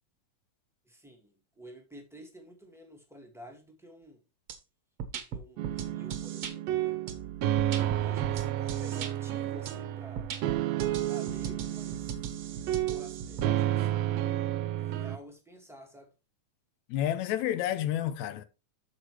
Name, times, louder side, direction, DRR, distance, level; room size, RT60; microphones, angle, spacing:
voice 1, 0.8-4.2 5.1-7.0 8.0-10.3 11.1-12.3 12.8-14.2 14.8-16.1, equal, ahead, 0.6 m, -50 dB
sound 1, 4.5-4.6 5.0-6.5 7.1-9.1 9.7-9.8 10.2-13.5, right 7 dB, 60° right, 1.7 m, -39 dB
sound 2, 5.6-15.2, right 13 dB, 80° right, 1.5 m, -31 dB
voice 2, 16.9-18.5, left 11 dB, 75° left, 2.0 m, -30 dB
13.0 x 4.8 x 3.1 m
omnidirectional pair, 3.5 m